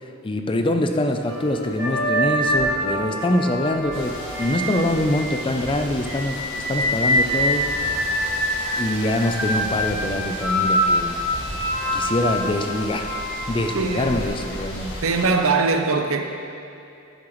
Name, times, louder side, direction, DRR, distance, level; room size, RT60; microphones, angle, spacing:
voice 1, 0.0-7.8 8.8-11.2 11.9-13.1 13.5-14.9, left 1 dB, 25° left, 5 dB, 0.5 m, -24 dB
sound 1, 1.2-5.6 6.0-14.1 15.2-15.4, equal, 10° right, 2.0 m, -25 dB
sound 2, 1.3-15.7, equal, 35° right, 1.3 m, -43 dB
sound 3, 3.9-15.3, left 1 dB, 60° left, 1.7 m, -36 dB
voice 2, 13.7-14.4 15.0-16.2, right 4 dB, 70° right, 5 dB, 0.7 m, -22 dB
11.0 x 9.7 x 3.1 m, 2.7 s
head